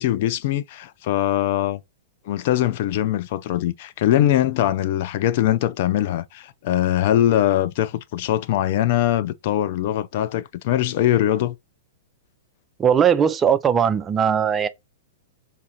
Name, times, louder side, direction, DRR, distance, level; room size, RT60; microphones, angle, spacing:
voice 1, 0.0-1.8 2.3-11.5, left 12 dB, 55° left, 0.4 m, -22 dB
voice 2, 12.8-14.7, right 8 dB, 20° right, 0.4 m, -19 dB
4.1 x 2.5 x 4.2 m
hypercardioid pair, 140°, 0 cm